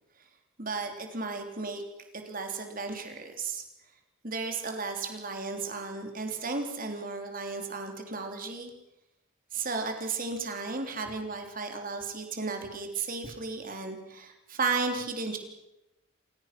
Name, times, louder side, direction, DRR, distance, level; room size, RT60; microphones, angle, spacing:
voice 1, 0.6-1.8 2.1-3.6 4.2-8.7 9.5-15.4, right 4 dB, 40° right, 5 dB, 3.5 m, -34 dB
28.5 x 17.0 x 6.1 m, 0.88 s
head